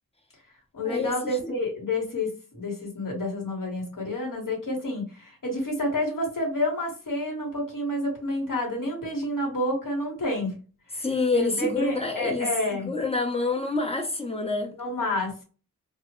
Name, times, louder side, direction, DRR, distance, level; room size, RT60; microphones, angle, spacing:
voice 1, 0.7-10.6 10.9-11.0 11.3-12.9 14.8-15.4, left 1 dB, 70° left, 1.3 m, -29 dB
voice 2, 11.0-14.7, left 3 dB, 15° left, 0.6 m, -27 dB
2.3 x 2.1 x 2.9 m
cardioid pair, 50°, 34 cm